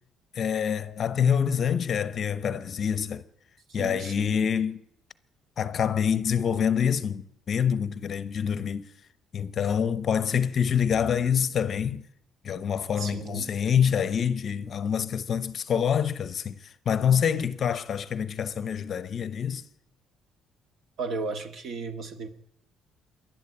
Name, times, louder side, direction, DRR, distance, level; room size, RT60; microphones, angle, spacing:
voice 1, 0.3-3.2 3.7-4.8 5.6-8.9 9.3-12.0 12.4-19.6, left 7 dB, 35° left, 0.8 m, -26 dB
voice 2, 3.8-4.4 13.0-13.5 21.0-22.3, right 3 dB, 45° right, 1.9 m, -35 dB
27.0 x 11.5 x 8.7 m
cardioid pair, 160°, 0 cm